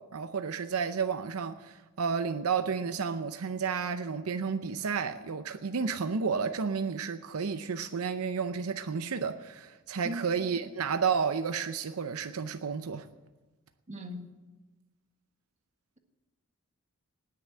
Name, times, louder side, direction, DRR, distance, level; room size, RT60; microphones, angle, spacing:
voice 1, 0.0-13.1, right 6 dB, 80° right, 0.6 m, -31 dB
voice 2, 13.9-14.3, equal, 35° right, 1.6 m, -38 dB
19.0 x 6.8 x 8.7 m
head